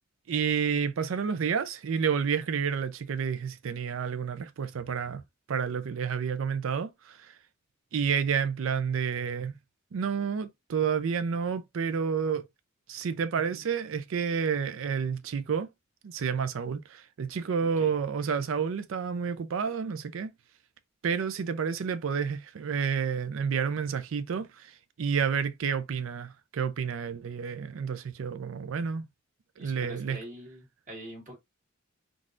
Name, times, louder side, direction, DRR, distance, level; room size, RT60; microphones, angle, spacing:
voice 1, 0.3-5.2 5.5-7.3 7.9-9.5 9.9-12.4 12.9-15.7 16.0-20.3 21.0-29.1 29.6-30.2, right 6 dB, 65° right, 0.4 m, -30 dB
voice 2, 17.6-17.9 29.6-31.4, right 1 dB, 40° right, 1.4 m, -44 dB
3.8 x 2.4 x 2.4 m
head